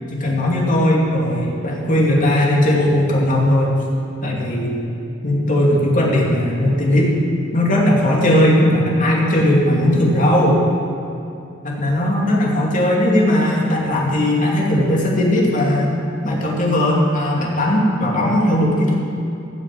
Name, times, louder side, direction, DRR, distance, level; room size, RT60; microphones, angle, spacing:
voice 1, 0.1-3.7 4.2-4.9 5.2-7.1 7.5-10.6 11.6-16.0 16.2-18.9, left 1 dB, 45° left, -3 dB, 2.6 m, -17 dB
15.5 x 7.5 x 7.5 m, 2.7 s
head